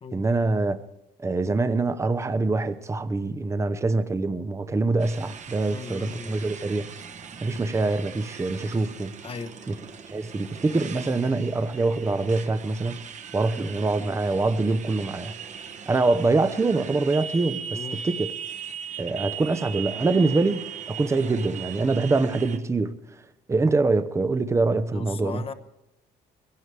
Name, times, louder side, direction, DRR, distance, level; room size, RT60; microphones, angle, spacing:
voice 1, 0.1-0.8 1.2-6.9 7.4-9.1 9.7-9.8 10.1-13.0 13.3-15.3 15.9-18.3 19.0-22.9 23.5-25.5, right 3 dB, 15° right, 0.8 m, -24 dB
Motorcycle, 5.0-22.6, right 7 dB, 45° right, 1.3 m, -39 dB
voice 2, 5.7-6.3 9.2-9.5 17.7-18.1 21.1-21.2 24.9-25.5, left 5 dB, 35° left, 1.1 m, -37 dB
22.0 x 17.0 x 3.4 m
cardioid pair, 110°, 17 cm